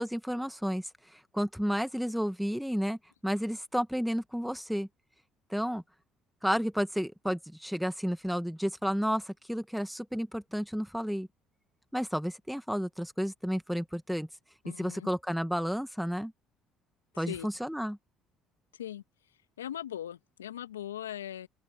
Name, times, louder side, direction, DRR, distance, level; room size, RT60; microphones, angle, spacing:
voice 1, 0.0-4.9 5.5-5.8 6.4-11.3 11.9-14.3 14.8-16.3 17.2-18.0, equal, ahead, 1.9 m, -32 dB
voice 2, 14.6-15.1 17.1-17.5 18.7-19.0 19.6-21.5, left 11 dB, 85° left, 1.7 m, -39 dB
open air
hypercardioid pair, 55°, 0 cm